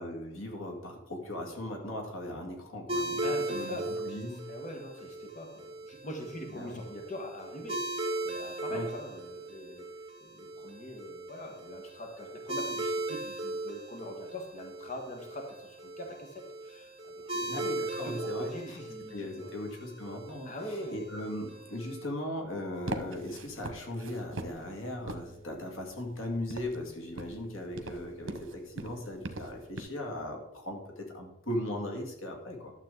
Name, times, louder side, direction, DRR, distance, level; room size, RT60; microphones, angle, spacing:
voice 1, 0.0-3.2 3.5-3.8 4.1-4.4 6.5-6.8 8.7-8.9 17.2-18.8 19.1-32.7, left 1 dB, 85° left, 2 dB, 2.2 m, -38 dB
sound 1, 2.9-22.0, right 2 dB, 30° right, 2.5 m, -38 dB
voice 2, 3.2-4.1 4.5-9.9 10.2-19.5 20.4-21.0, equal, 40° left, 1 dB, 1.5 m, -43 dB
sound 2, 22.7-29.8, right 2 dB, 75° right, 1.1 m, -42 dB
12.0 x 7.4 x 3.9 m, 0.94 s
head